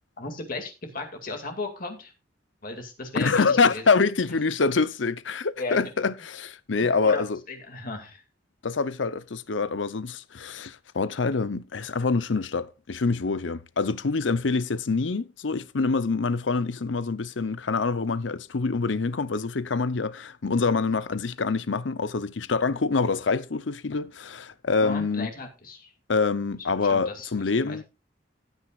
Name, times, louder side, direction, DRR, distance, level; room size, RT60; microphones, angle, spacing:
voice 1, 0.2-2.1 2.6-3.8 5.6-5.8 7.0-8.2 24.8-25.9 26.7-27.3 27.6-27.8, left 3 dB, 50° left, 2.3 m, -35 dB
voice 2, 3.1-7.4 8.6-25.3 26.1-27.8, left 4 dB, 90° left, 0.7 m, -25 dB
16.0 x 9.2 x 2.5 m
head